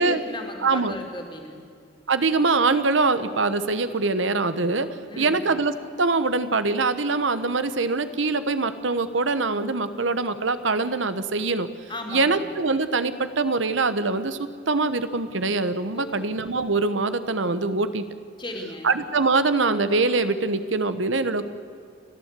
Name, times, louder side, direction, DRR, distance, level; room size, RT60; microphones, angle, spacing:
voice 1, 0.0-1.6 5.1-5.4 11.9-12.4 15.9-16.3 18.4-18.9, left 1 dB, 25° left, 2 dB, 2.8 m, -35 dB
voice 2, 0.6-0.9 2.1-4.9 5.2-11.7 12.1-18.0 18.8-21.5, right 3 dB, 80° right, 12 dB, 1.1 m, -23 dB
30.0 x 12.5 x 8.3 m, 2.3 s
head